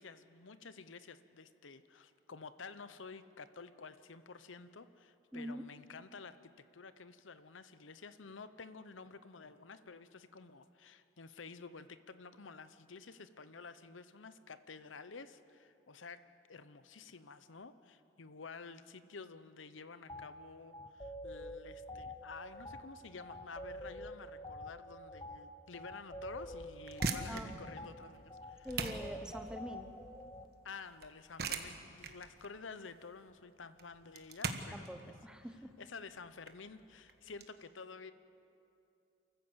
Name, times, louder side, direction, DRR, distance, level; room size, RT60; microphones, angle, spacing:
voice 1, 0.0-16.2 16.5-28.9 30.6-35.1 35.8-38.1, left 4 dB, 85° left, 13 dB, 0.8 m, -51 dB
voice 2, 5.3-5.6 27.3-27.5 28.6-29.9 34.7-35.7, equal, 5° right, 7 dB, 0.9 m, -45 dB
sound 1, 20.1-20.3 20.7-30.5, left 1 dB, 20° left, 0.9 m, -47 dB
sound 2, 26.7-37.5, right 4 dB, 55° right, 1.3 m, -42 dB
28.0 x 14.5 x 8.0 m, 2.7 s
head